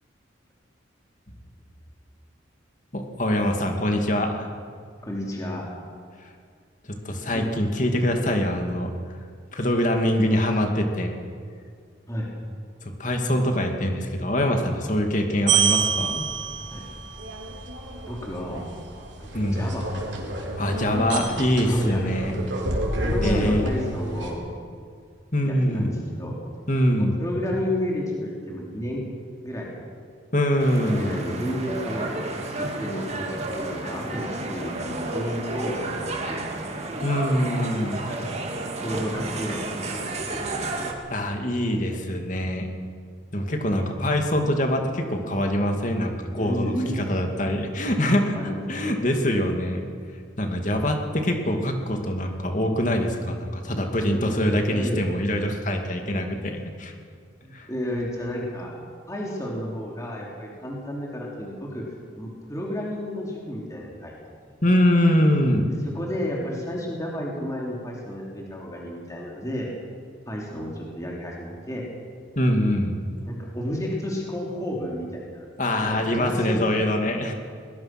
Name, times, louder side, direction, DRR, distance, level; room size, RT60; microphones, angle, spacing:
voice 1, 2.9-4.5 7.0-8.9 9.5-11.1 12.8-16.3 19.3-19.8 20.6-22.4 23.2-23.8 25.3-25.9 26.7-27.2 30.3-31.1 37.0-38.0 41.1-42.7 43.3-46.7 47.1-49.8 50.4-56.9 57.5-57.7 64.6-65.7 72.4-73.0 75.6-77.3, left 1 dB, 40° left, 3 dB, 2.5 m, -24 dB
voice 2, 5.0-5.7 7.3-7.4 12.1-12.3 16.7-16.8 18.0-18.6 19.2-19.9 21.6-22.0 22.4-22.5 23.0-24.5 25.4-26.3 27.0-29.1 29.4-29.7 30.8-32.1 32.5-36.5 37.9-38.2 38.8-40.0 40.3-40.9 46.3-47.1 48.3-48.6 53.4-53.5 54.1-54.3 54.7-55.0 57.4-58.7 59.1-61.8 62.2-64.1 64.4-64.5 65.8-69.7 70.3-71.8 73.3-75.5 75.8-76.6, equal, 15° left, -3 dB, 3.3 m, -31 dB
sound 1, 15.5-24.3, right 4 dB, 70° right, 4.0 m, -28 dB
sound 2, 30.6-40.9, right 2 dB, 35° right, 2.3 m, -31 dB
21.5 x 21.0 x 6.1 m, 2.1 s
head